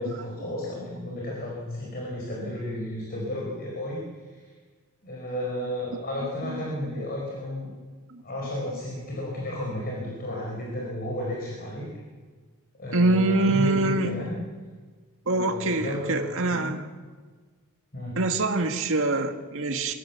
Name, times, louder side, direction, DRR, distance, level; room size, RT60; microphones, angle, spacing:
voice 1, 0.0-4.0 4.3-4.4 5.0-7.7 8.2-11.9 12.8-14.4 15.3-16.8 17.9-18.2, left 1 dB, 45° left, -2 dB, 4.9 m, -33 dB
voice 2, 12.9-14.2 15.3-16.9 18.2-19.9, right 2 dB, 65° right, 4 dB, 2.1 m, -25 dB
25.5 x 16.0 x 7.4 m, 1.5 s
head